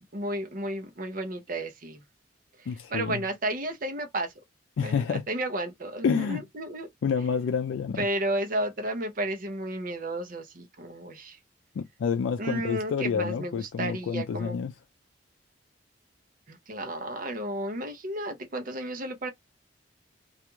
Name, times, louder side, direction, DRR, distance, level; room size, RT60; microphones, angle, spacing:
voice 1, 0.1-2.0 2.6-4.3 4.8-6.9 8.0-11.4 12.4-14.6 16.5-19.3, right 1 dB, 50° right, 0.7 m, -32 dB
voice 2, 2.7-3.2 4.8-5.2 6.0-6.4 7.0-8.1 11.8-14.7, left 6 dB, 85° left, 0.3 m, -28 dB
2.4 x 2.3 x 2.9 m
head